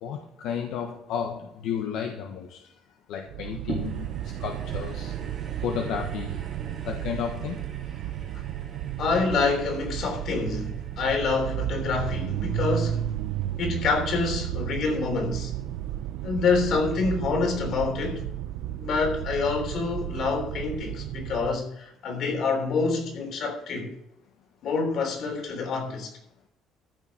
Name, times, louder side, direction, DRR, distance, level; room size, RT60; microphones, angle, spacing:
voice 1, 0.0-2.6 3.1-5.1 5.6-6.4 6.8-7.6, left 7 dB, 70° left, 1.4 m, -32 dB
sound 1, 3.3-21.6, right 12 dB, 80° right, 0.6 m, -33 dB
sound 2, 3.7-14.2 14.8-14.9, right 4 dB, 35° right, 2.6 m, -43 dB
voice 2, 9.0-13.1 13.6-15.5 16.2-18.2 18.8-23.9 24.6-26.1, left 4 dB, 50° left, 3.4 m, -27 dB
14.0 x 6.2 x 5.8 m
cardioid pair, 155°, 0 cm